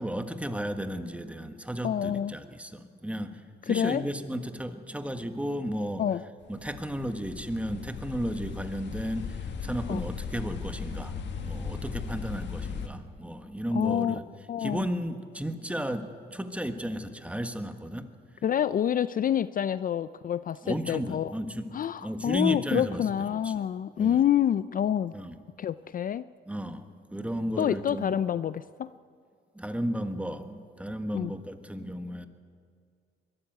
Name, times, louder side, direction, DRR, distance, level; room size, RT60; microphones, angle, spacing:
voice 1, 0.0-6.1 6.5-14.2 14.6-18.1 20.6-23.6 24.0-24.2 25.1-25.4 26.5-28.2 29.5-32.3, equal, 5° right, 8 dB, 1.5 m, -34 dB
voice 2, 1.8-2.3 3.7-4.0 6.0-6.2 9.9-10.0 13.7-14.2 14.5-14.9 18.4-21.3 21.7-25.2 25.6-26.2 27.6-28.9 31.1-31.3, left 9 dB, 45° left, 16 dB, 0.4 m, -27 dB
sound 1, 6.4-12.9, left 6 dB, 70° left, 1.9 m, -37 dB
22.5 x 13.0 x 9.2 m, 2.2 s
cardioid pair, 85°, 20 cm